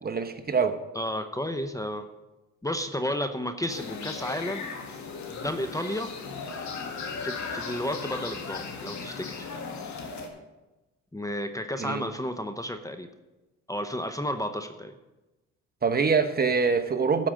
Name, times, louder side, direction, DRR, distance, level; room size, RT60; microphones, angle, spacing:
voice 1, 0.0-0.8 11.8-12.0 15.8-17.3, right 5 dB, 30° right, 7 dB, 0.9 m, -24 dB
voice 2, 0.9-2.1 2.6-4.7 5.3-6.1 7.2-9.5 11.1-13.1 13.7-14.9, left 1 dB, 10° left, 8 dB, 0.7 m, -32 dB
sound 1, 3.7-10.3, left 5 dB, 70° left, 1.8 m, -37 dB
13.0 x 5.0 x 7.5 m, 1.1 s
cardioid pair, 90°, 30 cm